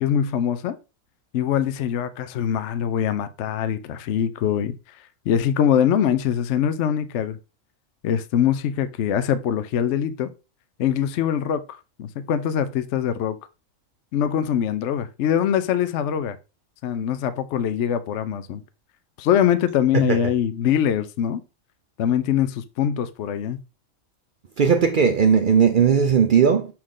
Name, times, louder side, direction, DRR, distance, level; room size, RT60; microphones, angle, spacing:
voice 1, 0.0-0.8 1.3-4.7 5.3-7.4 8.0-10.3 10.8-13.4 14.1-16.4 16.8-18.6 19.2-21.4 22.0-23.6, left 9 dB, 70° left, 0.8 m, -23 dB
voice 2, 24.6-26.7, right 7 dB, 55° right, 0.5 m, -17 dB
6.3 x 4.4 x 3.7 m
omnidirectional pair, 1.4 m